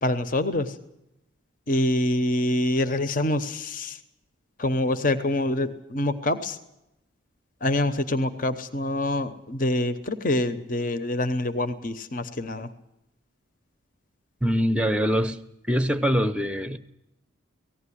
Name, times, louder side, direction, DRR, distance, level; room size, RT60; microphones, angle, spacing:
voice 1, 0.0-0.8 1.7-4.0 4.6-6.6 7.6-12.7, left 1 dB, 40° left, 11 dB, 0.9 m, -26 dB
voice 2, 14.4-15.4 15.7-16.8, equal, 5° right, 12 dB, 0.7 m, -23 dB
18.5 x 15.5 x 9.9 m, 0.88 s
head